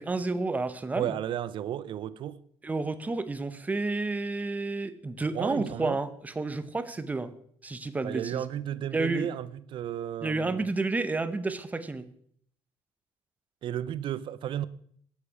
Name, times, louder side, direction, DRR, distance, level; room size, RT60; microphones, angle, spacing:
voice 1, 0.0-1.2 2.6-7.3 7.6-8.4 8.9-9.3 10.2-12.1, right 3 dB, 15° right, 0.7 m, -30 dB
voice 2, 1.0-2.4 5.3-6.0 8.0-10.7 13.6-14.7, right 11 dB, 50° right, 0.5 m, -33 dB
8.4 x 8.2 x 4.8 m
cardioid pair, 135°, 11 cm